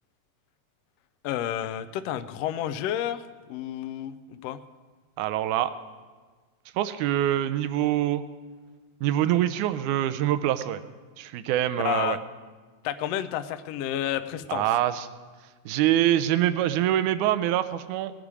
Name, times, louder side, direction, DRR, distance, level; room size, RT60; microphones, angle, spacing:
voice 1, 1.2-3.2 3.5-4.1 4.4-4.6 11.8-12.2 12.8-14.6, left 10 dB, 80° left, 11 dB, 1.5 m, -30 dB
voice 2, 5.2-5.7 6.8-8.2 9.0-10.8 11.2-12.2 14.5-15.1 15.7-18.1, right 12 dB, 90° right, 11 dB, 2.1 m, -24 dB
20.0 x 8.9 x 4.8 m, 1.4 s
omnidirectional pair, 3.4 m